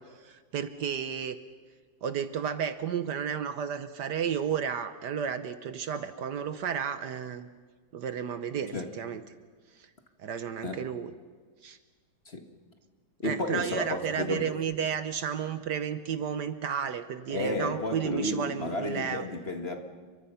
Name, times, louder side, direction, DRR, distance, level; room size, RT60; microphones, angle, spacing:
voice 1, 0.0-1.4 2.0-7.5 7.9-9.2 9.8-9.9 10.2-11.1 11.6-11.8 13.2-19.3, right 7 dB, 65° right, 11 dB, 1.4 m, -32 dB
voice 2, 13.2-14.5 17.3-19.8, left 2 dB, 35° left, 5 dB, 1.8 m, -32 dB
29.5 x 23.5 x 5.7 m, 1.5 s
omnidirectional pair, 2.1 m